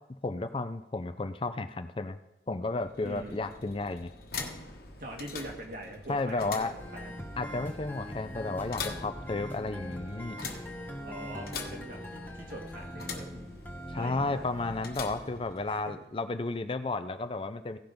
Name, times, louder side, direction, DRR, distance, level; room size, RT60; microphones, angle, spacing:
voice 1, 0.2-2.2 2.5-4.1 6.1-6.7 7.4-10.4 13.9-17.8, left 3 dB, 30° left, 10 dB, 0.5 m, -33 dB
sound 1, 2.7-16.0, left 4 dB, 55° left, 1.3 m, -44 dB
voice 2, 3.0-3.4 5.0-7.2 11.0-13.6 13.9-14.5 15.7-15.8, right 1 dB, 50° right, 1 dB, 1.9 m, -43 dB
sound 2, 6.8-16.0, equal, 10° left, 1.0 m, -43 dB
16.0 x 5.8 x 5.1 m, 0.87 s
head